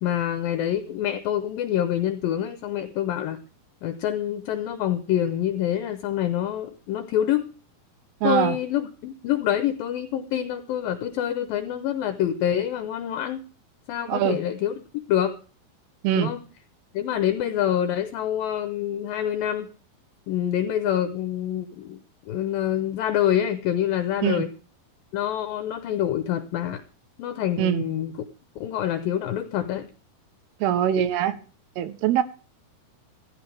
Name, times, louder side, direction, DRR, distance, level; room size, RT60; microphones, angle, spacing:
voice 1, 0.0-3.4 3.8-7.5 8.2-13.4 13.9-14.8 15.1-15.4 16.2-16.4 16.9-19.7 20.3-22.0 22.3-24.5 25.1-26.8 27.2-28.1 28.6-29.9, left 11 dB, 75° left, 10 dB, 2.3 m, -26 dB
voice 2, 8.2-8.6 14.1-14.4 16.0-16.3 24.2-24.5 27.6-27.9 30.6-31.4 31.8-32.2, right 10 dB, 80° right, 13 dB, 2.8 m, -23 dB
15.5 x 15.0 x 3.4 m, 0.37 s
omnidirectional pair, 4.7 m